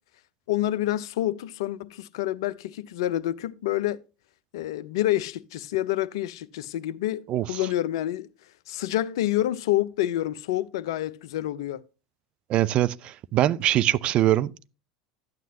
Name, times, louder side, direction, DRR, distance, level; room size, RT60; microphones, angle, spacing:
voice 1, 0.5-4.0 4.5-8.3 8.7-11.8, left 14 dB, 60° left, 0.5 m, -28 dB
voice 2, 12.5-14.5, right 13 dB, 40° right, 0.4 m, -22 dB
12.0 x 9.1 x 2.7 m
figure-of-eight pair, 75°, 3 cm